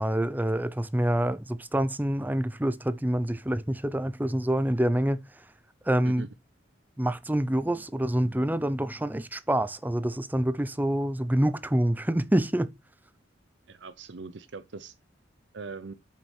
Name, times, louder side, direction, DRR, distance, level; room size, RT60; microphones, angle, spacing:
voice 1, 0.0-5.2 5.9-6.3 7.0-12.7, right 1 dB, 10° right, 0.5 m, -26 dB
voice 2, 13.7-15.0 15.5-15.9, right 4 dB, 60° right, 0.6 m, -41 dB
8.4 x 6.5 x 4.7 m
head